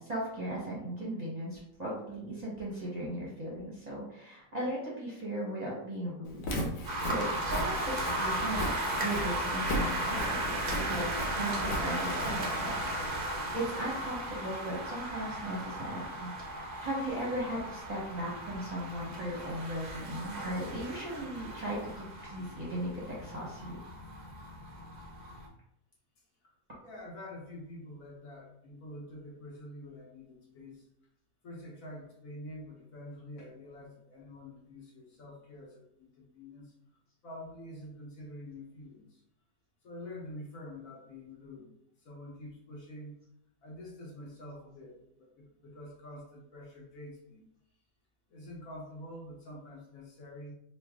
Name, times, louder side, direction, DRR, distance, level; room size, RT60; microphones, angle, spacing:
voice 1, 0.0-6.4 6.7-8.6 9.0-12.8 13.2-16.3 16.8-23.8, right 1 dB, 35° right, -6 dB, 0.7 m, -37 dB
Walk footsteps, 6.3-13.1, equal, 85° left, 1.2 m, -38 dB
sound 1, 6.8-25.5, right 1 dB, 65° right, 0.4 m, -36 dB
voice 2, 26.8-30.9 31.4-36.7 37.2-39.2 39.8-41.7 42.0-43.1 43.6-47.4 48.3-50.5, left 1 dB, 65° left, -2 dB, 1.3 m, -47 dB
3.2 x 2.4 x 3.5 m, 0.79 s
omnidirectional pair, 1.6 m